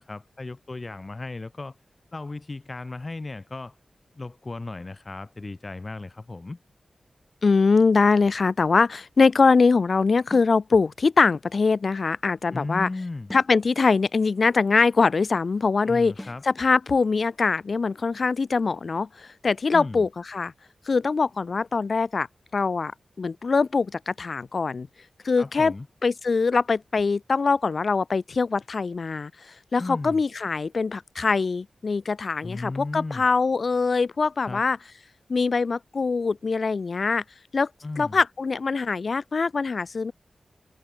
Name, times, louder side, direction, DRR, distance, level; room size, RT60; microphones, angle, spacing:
voice 1, 0.0-1.7 2.1-3.7 4.2-6.6 12.5-13.3 15.9-16.4 19.7-20.1 25.4-25.9 29.8-30.2 32.4-33.2 34.5-34.6 37.8-38.2, left 3 dB, 30° left, 2.1 m, -35 dB
voice 2, 7.4-12.9 13.3-20.5 20.9-22.3 22.5-22.9 23.2-24.9 25.2-25.7 26.0-34.8 35.3-37.2 37.5-37.7 38.0-40.1, left 4 dB, 50° left, 0.9 m, -23 dB
sound 1, 10.3-10.6 13.3-13.6 16.2-16.5, left 1 dB, 10° left, 1.3 m, -41 dB
wide cardioid pair, 145°, 0 cm